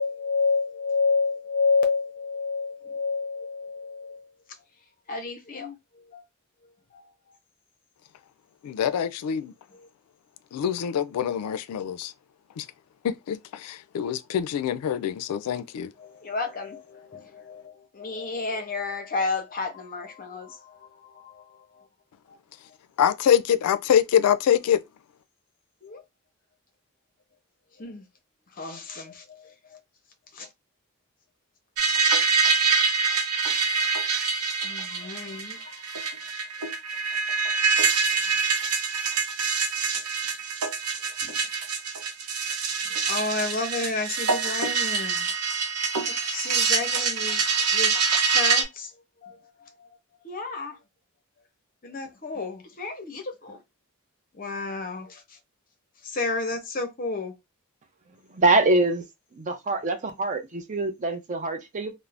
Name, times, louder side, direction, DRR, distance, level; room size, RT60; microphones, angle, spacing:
voice 1, 0.0-4.3 5.1-5.7 6.1-6.2 16.0-20.9 21.2-21.4 25.8-26.0 27.8-28.0 28.6-29.2 30.3-30.5 34.6-35.7 41.2-41.4 43.1-45.3 46.1-47.4 47.7-47.9 48.3-48.9 49.2-49.9 50.2-50.8 51.8-53.6 54.4-55.2 56.0-57.3, left 4 dB, 40° left, 0.6 m, -30 dB
voice 2, 8.6-9.5 10.5-12.1 12.6-12.7 13.0-15.9 23.0-24.8, left 9 dB, 90° left, 0.3 m, -24 dB
sound 1, 31.8-48.6, right 5 dB, 85° right, 0.6 m, -25 dB
voice 3, 58.3-59.0 59.3-61.9, right 2 dB, 35° right, 0.5 m, -24 dB
2.4 x 2.0 x 3.2 m
head